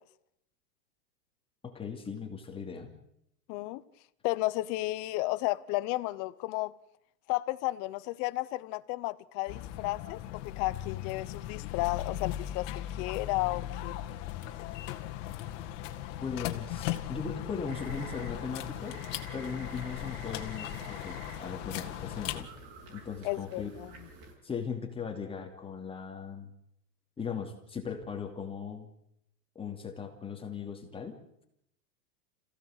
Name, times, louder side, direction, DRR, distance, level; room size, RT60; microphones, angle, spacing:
voice 1, 1.6-2.9 16.2-19.0 19.3-22.5 22.9-23.7 24.4-26.5 27.2-28.9 29.5-31.2, left 6 dB, 10° left, 2.6 m, -38 dB
voice 2, 3.5-3.8 4.2-6.7 7.3-14.0 23.2-23.9, left 19 dB, 30° left, 0.8 m, -33 dB
sound 1, 9.5-22.4, left 12 dB, 50° left, 2.1 m, -38 dB
sound 2, 17.7-24.3, right 2 dB, 50° right, 6.7 m, -49 dB
27.0 x 16.0 x 8.1 m
supercardioid pair, 150°, 49 cm